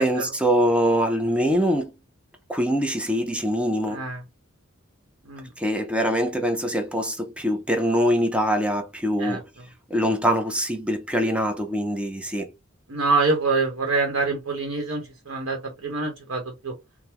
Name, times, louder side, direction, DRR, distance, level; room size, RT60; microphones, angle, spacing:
voice 1, 0.0-1.9 2.5-4.0 5.6-9.5 9.9-12.5, equal, 5° right, 0.5 m, -23 dB
voice 2, 12.9-16.7, right 3 dB, 80° right, 0.9 m, -25 dB
3.4 x 2.1 x 2.8 m
head